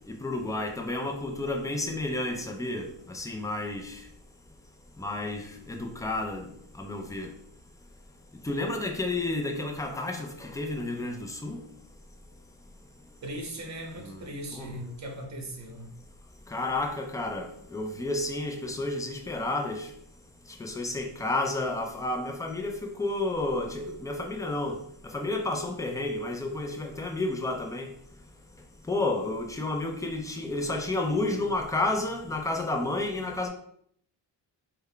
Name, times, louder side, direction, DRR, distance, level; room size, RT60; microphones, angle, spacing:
voice 1, 0.1-4.0 5.0-6.5 6.8-7.3 8.4-11.6 14.0-14.2 14.5-14.7 16.5-19.9 20.6-24.8 25.1-27.9 28.9-33.5, left 2 dB, 10° left, 0.4 m, -31 dB
voice 2, 13.2-15.9, right 1 dB, 40° right, 0.9 m, -39 dB
3.6 x 2.2 x 3.3 m
cardioid pair, 100°, 44 cm